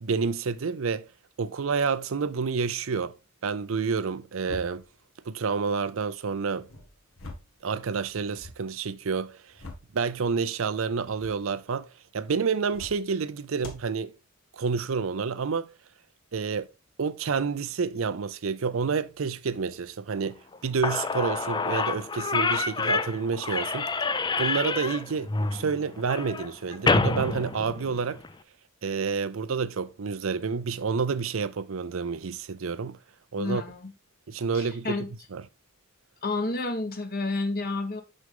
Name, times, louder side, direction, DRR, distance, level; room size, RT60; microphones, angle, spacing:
voice 1, 0.0-1.1 1.4-3.2 3.4-4.8 5.2-6.7 7.6-9.5 9.9-14.2 14.5-15.7 16.3-16.7 17.0-23.9 24.4-28.2 28.8-33.0 33.3-33.6 34.3-35.0 35.3-35.4, right 5 dB, 75° right, 0.5 m, -29 dB
sound 1, 4.4-5.0 6.5-7.6 8.0-8.6 9.2-10.0 10.9-11.4 12.6-13.1 13.6-13.9, left 2 dB, 80° left, 1.9 m, -44 dB
Slam / Squeak, 20.5-20.6 20.8-28.3, left 4 dB, 20° left, 0.5 m, -28 dB
voice 2, 33.4-33.9 34.5-35.1 36.2-38.0, left 2 dB, 45° left, 1.2 m, -30 dB
6.4 x 6.2 x 3.7 m
head